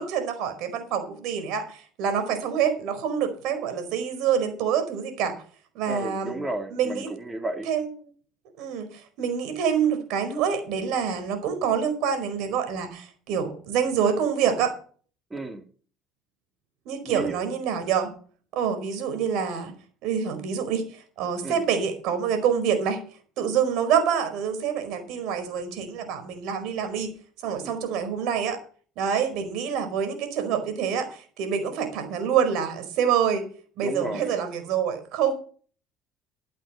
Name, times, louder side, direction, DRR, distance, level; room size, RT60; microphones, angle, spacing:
voice 1, 0.0-5.3 5.7-6.4 6.7-7.1 7.7-7.9 8.6-14.7 16.8-18.1 18.5-19.7 20.0-23.0 23.4-27.1 27.4-28.6 29.0-33.5 33.8-35.3, right 7 dB, 70° right, 9 dB, 4.8 m, -26 dB
voice 2, 5.9-7.7 15.3-15.6 17.0-17.4 21.4-21.6 27.6-27.7 33.8-34.4, right 2 dB, 20° right, 5 dB, 3.5 m, -33 dB
14.5 x 11.0 x 4.4 m, 0.42 s
supercardioid pair, 75°, 0 cm